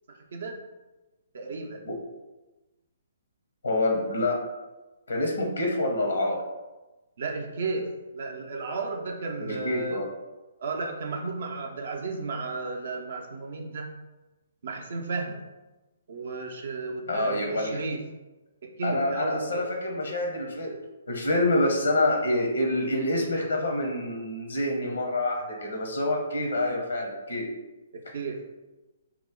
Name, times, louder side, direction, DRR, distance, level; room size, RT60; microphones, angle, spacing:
voice 1, 0.1-0.5 1.3-1.8 7.2-7.9 8.1-10.0 10.6-13.9 14.6-15.4 16.1-18.0 18.6-19.7 28.1-28.4, right 3 dB, 65° right, 1 dB, 0.5 m, -33 dB
voice 2, 3.6-4.4 5.1-6.4 9.4-10.1 17.1-17.8 18.8-20.8 21.1-27.5, left 1 dB, 80° left, 0 dB, 0.7 m, -27 dB
3.0 x 2.0 x 3.7 m, 1.1 s
figure-of-eight pair, 135°, 0 cm